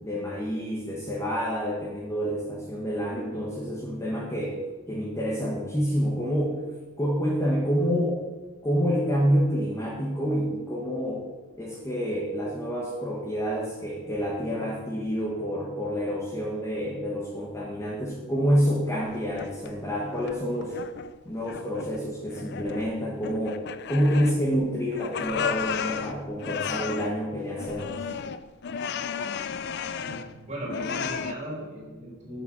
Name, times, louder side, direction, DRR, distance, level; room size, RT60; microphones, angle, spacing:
voice 1, 0.0-4.6 4.9-6.6 7.0-8.2 8.6-11.3 11.6-20.8 21.2-28.1, equal, 15° left, -3 dB, 1.3 m, -28 dB
sound 1, 18.9-19.7 20.1-21.2 21.4-22.0 22.3-22.9 23.2-24.6 24.9-27.2 27.6-30.3 30.7-31.3, left 6 dB, 50° left, 0.4 m, -33 dB
voice 2, 30.0-32.4, right 1 dB, 30° right, -4 dB, 3.5 m, -37 dB
7.4 x 7.2 x 5.6 m, 1.3 s
head